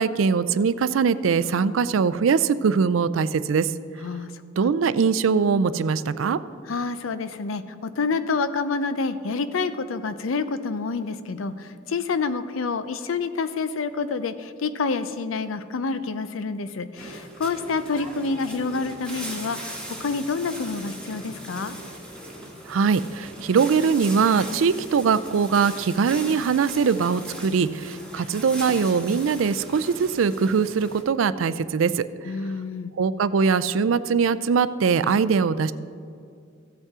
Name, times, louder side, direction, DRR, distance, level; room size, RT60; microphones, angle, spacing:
voice 1, 0.0-3.7 4.6-6.4 22.7-32.1 33.0-35.7, right 5 dB, 80° right, 15 dB, 0.4 m, -22 dB
voice 2, 4.0-4.3 4.6-4.7 6.7-21.7 32.2-32.9, left 4 dB, 90° left, 12 dB, 0.6 m, -28 dB
sound 1, 17.0-31.0, right 1 dB, 5° left, 1.4 m, -39 dB
15.5 x 8.1 x 3.6 m, 2.4 s
head